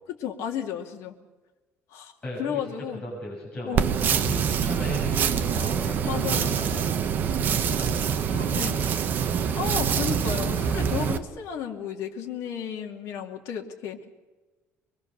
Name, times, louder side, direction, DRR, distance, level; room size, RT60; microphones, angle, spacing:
voice 1, 0.1-1.1 1.9-2.1 2.4-3.0 3.6-3.9 4.4-4.5 6.0-6.8 8.5-8.8 9.5-14.1, left 8 dB, 65° left, 2 dB, 2.5 m, -33 dB
voice 2, 2.2-7.2 7.7-9.2, left 1 dB, 20° left, -5 dB, 6.9 m, -37 dB
sound 1, 3.8-11.2, right 7 dB, 35° right, 1.1 m, -25 dB
24.0 x 21.5 x 6.8 m, 1.2 s
cardioid pair, 175°, 5 cm